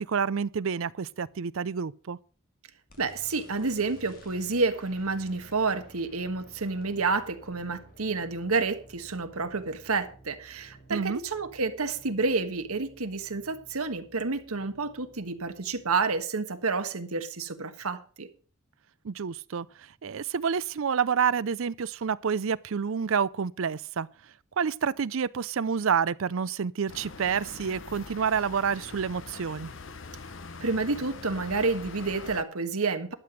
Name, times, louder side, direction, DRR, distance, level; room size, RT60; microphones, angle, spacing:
voice 1, 0.0-2.2 10.9-11.2 19.0-24.1 24.6-29.7, right 6 dB, 65° right, 0.5 m, -28 dB
sound 1, 2.9-16.2, equal, 40° left, 2.3 m, -54 dB
voice 2, 3.0-18.3 30.6-33.1, right 4 dB, 85° right, 1.4 m, -29 dB
sound 2, 26.9-32.4, left 4 dB, 55° left, 0.9 m, -43 dB
12.0 x 7.8 x 6.4 m
head